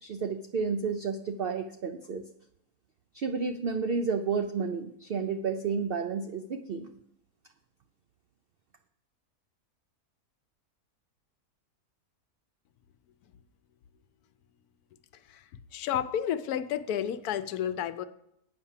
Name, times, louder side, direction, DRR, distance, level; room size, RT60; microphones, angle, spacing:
voice 1, 0.0-2.2 3.1-6.9, right 5 dB, 90° right, 7 dB, 0.5 m, -31 dB
voice 2, 15.7-18.0, left 9 dB, 80° left, 13 dB, 1.1 m, -31 dB
8.6 x 5.7 x 7.2 m, 0.79 s
omnidirectional pair, 1.6 m